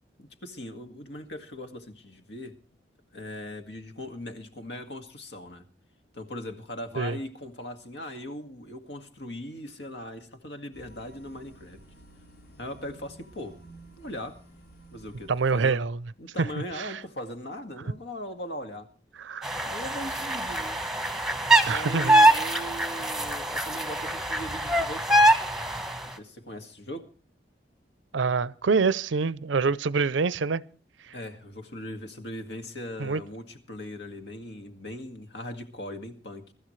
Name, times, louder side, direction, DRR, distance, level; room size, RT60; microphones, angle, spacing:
voice 1, 0.2-2.6 3.1-5.7 6.1-11.8 12.6-13.6 14.0-14.4 14.9-15.9 16.2-18.9 19.6-20.8 21.7-25.2 26.1-27.1 31.1-36.5, left 1 dB, 70° left, 2.0 m, -39 dB
sound 1, 10.7-15.7, right 1 dB, 50° left, 5.4 m, -52 dB
voice 2, 15.3-16.0 16.4-16.5 16.8-17.0 19.2-19.5 21.7-22.2 28.1-30.6 31.1-31.2 33.0-33.2, right 4 dB, 90° right, 0.6 m, -26 dB
sound 2, 19.4-26.1, right 1 dB, ahead, 1.1 m, -23 dB
23.0 x 13.0 x 3.2 m
head